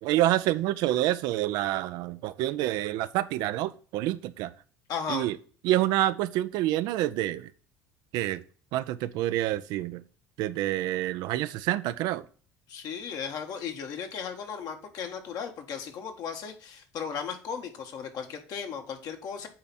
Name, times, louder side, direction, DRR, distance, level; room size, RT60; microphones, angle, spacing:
voice 1, 0.0-4.5 5.1-5.4 5.6-7.5 8.1-8.4 8.7-10.0 10.4-12.2, right 14 dB, 70° right, 0.5 m, -27 dB
voice 2, 4.9-5.3 12.7-19.5, left 6 dB, 60° left, 1.6 m, -36 dB
8.6 x 3.5 x 4.2 m
supercardioid pair, 80°, 7 cm